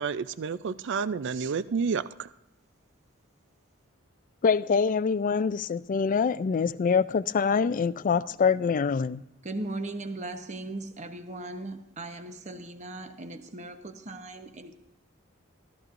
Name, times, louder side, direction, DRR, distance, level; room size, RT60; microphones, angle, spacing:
voice 1, 0.0-2.3, right 5 dB, 60° right, 0.4 m, -30 dB
voice 2, 4.4-9.2, left 5 dB, 40° left, 0.3 m, -25 dB
voice 3, 9.4-14.8, right 2 dB, 35° right, 0.9 m, -38 dB
14.0 x 13.5 x 2.5 m
head